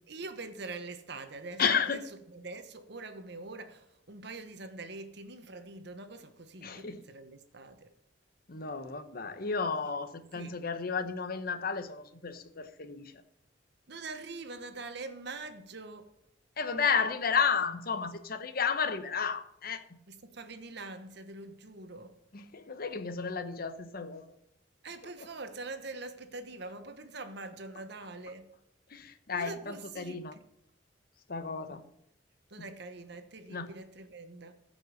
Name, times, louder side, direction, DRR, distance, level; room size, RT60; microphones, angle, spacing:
voice 1, 0.1-2.0 2.3-7.9 10.3-10.6 13.9-16.1 20.1-22.2 24.8-28.6 29.3-30.4 31.7-31.8 32.5-34.5, right 3 dB, 60° right, 1.2 m, -44 dB
voice 2, 1.6-2.0 6.6-7.0 8.5-13.1 16.6-19.8 22.3-24.2 28.9-30.3 31.3-31.8 33.5-33.7, left 6 dB, 55° left, 1.0 m, -32 dB
14.5 x 5.4 x 6.6 m
head